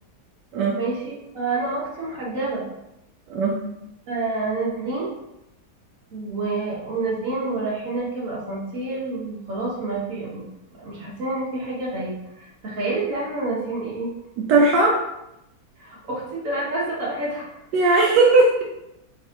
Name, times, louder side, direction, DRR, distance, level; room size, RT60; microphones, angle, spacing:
voice 1, 0.7-2.6 4.1-5.1 6.1-10.4 10.8-14.1 15.8-17.5, right 2 dB, 50° right, -5 dB, 1.5 m, -28 dB
voice 2, 3.3-3.6 14.5-15.0 17.7-18.6, right 3 dB, 85° right, -2 dB, 1.3 m, -17 dB
4.5 x 3.2 x 2.9 m, 0.86 s
omnidirectional pair, 1.8 m